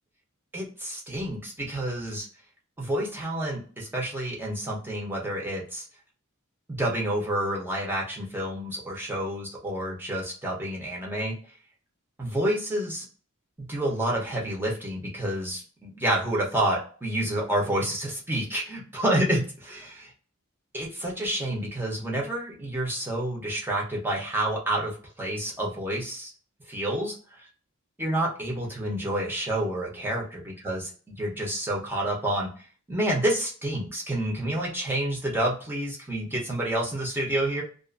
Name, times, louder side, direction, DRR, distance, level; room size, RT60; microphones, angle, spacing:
voice 1, 0.5-2.3 2.8-5.8 6.7-11.3 12.2-13.1 13.7-20.1 20.7-26.3 26.7-27.2 28.0-32.5 32.9-37.6, right 1 dB, 10° right, -2 dB, 0.7 m, -29 dB
2.4 x 2.4 x 2.4 m, 0.40 s
head